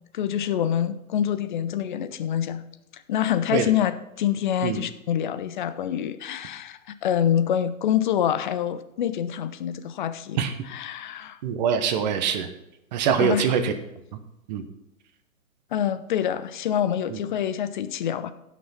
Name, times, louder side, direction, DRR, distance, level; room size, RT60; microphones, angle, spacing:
voice 1, 0.1-2.6 2.9-11.4 13.2-13.5 15.7-18.3, left 10 dB, 35° left, 12 dB, 0.7 m, -26 dB
voice 2, 11.4-12.5 12.9-13.7 14.5-14.6 17.1-17.2, right 7 dB, 30° right, 8 dB, 1.1 m, -23 dB
16.5 x 6.2 x 4.4 m, 0.88 s
hypercardioid pair, 140°, 42 cm